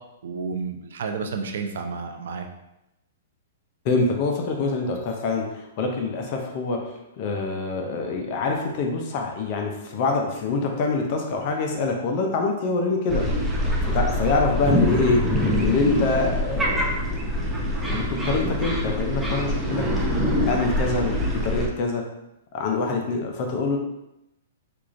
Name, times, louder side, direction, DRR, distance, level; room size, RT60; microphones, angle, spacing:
voice 1, 0.2-2.5, right 5 dB, 75° right, 5 dB, 0.5 m, -31 dB
voice 2, 3.8-13.2 13.8-16.9 17.8-19.9 20.4-22.0 22.5-23.8, left 3 dB, 45° left, 2 dB, 0.5 m, -25 dB
sound 1, 13.1-21.7, equal, 5° right, 0.6 m, -24 dB
4.6 x 2.4 x 2.5 m, 0.89 s
hypercardioid pair, 140°, 0 cm